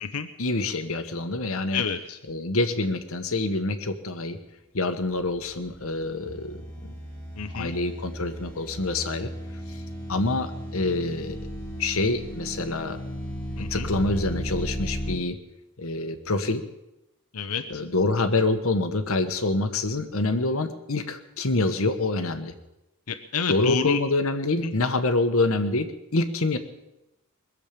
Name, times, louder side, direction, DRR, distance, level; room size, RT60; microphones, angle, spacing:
voice 1, 0.4-1.8 2.3-4.4 4.7-6.6 7.5-9.3 9.7-9.8 10.1-11.4 11.8-13.0 13.7-15.4 15.8-16.6 17.7-22.5 23.5-26.6, left 2 dB, 65° left, 8 dB, 1.2 m, -26 dB
voice 2, 1.7-2.2 7.4-7.7 13.6-13.9 17.3-17.8 23.1-24.0 24.6-24.7, left 6 dB, 80° left, 7 dB, 0.9 m, -29 dB
sound 1, 5.3-15.2, equal, 5° left, 3.4 m, -35 dB
21.0 x 7.4 x 8.5 m, 0.91 s
head